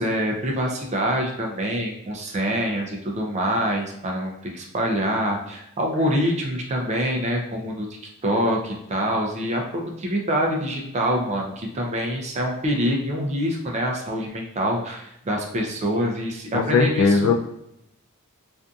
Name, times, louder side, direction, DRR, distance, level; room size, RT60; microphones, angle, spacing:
voice 1, 0.0-7.9 8.2-17.3, equal, 30° right, 0 dB, 0.4 m, -25 dB
voice 2, 16.5-17.3, left 4 dB, 65° left, 4 dB, 0.3 m, -19 dB
2.5 x 2.5 x 2.3 m, 0.82 s
head